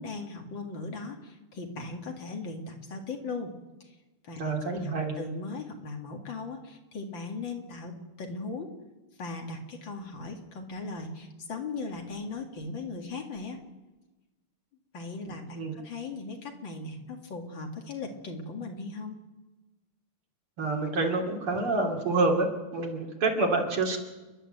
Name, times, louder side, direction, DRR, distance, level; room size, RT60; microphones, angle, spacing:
voice 1, 0.0-3.5 3.8-3.9 4.2-8.7 9.2-13.6 14.9-19.2, left 3 dB, 60° left, 3 dB, 2.9 m, -38 dB
voice 2, 4.4-5.1 15.5-15.7 20.6-24.0, right 3 dB, 75° right, 1 dB, 3.8 m, -27 dB
29.5 x 11.5 x 7.9 m, 1.1 s
omnidirectional pair, 2.4 m